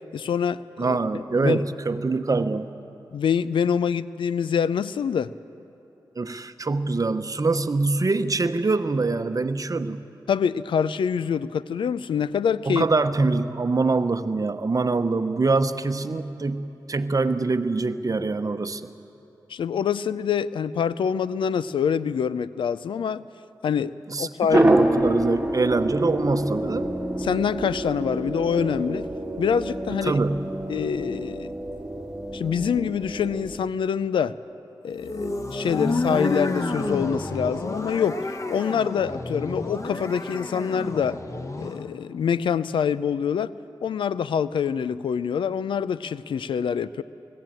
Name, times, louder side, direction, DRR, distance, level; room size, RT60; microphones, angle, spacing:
voice 1, 0.1-1.0 1.4-1.6 3.1-5.3 10.3-12.9 19.5-23.2 23.6-23.9 24.2-24.7 27.2-29.1 29.4-30.1 30.7-31.5 32.3-34.3 34.8-38.2 38.5-41.2 41.6-43.5 43.8-47.0, left 7 dB, 85° left, 16 dB, 0.4 m, -25 dB
voice 2, 0.8-2.7 6.2-10.0 12.7-18.9 24.1-26.9 30.0-30.6, right 3 dB, 45° right, 10 dB, 0.9 m, -24 dB
sound 1, 24.5-33.6, right 1 dB, 10° right, 2.5 m, -27 dB
sound 2, 35.0-41.8, left 2 dB, 40° left, 1.4 m, -30 dB
19.5 x 15.0 x 9.0 m, 2.9 s
cardioid pair, 40°, 8 cm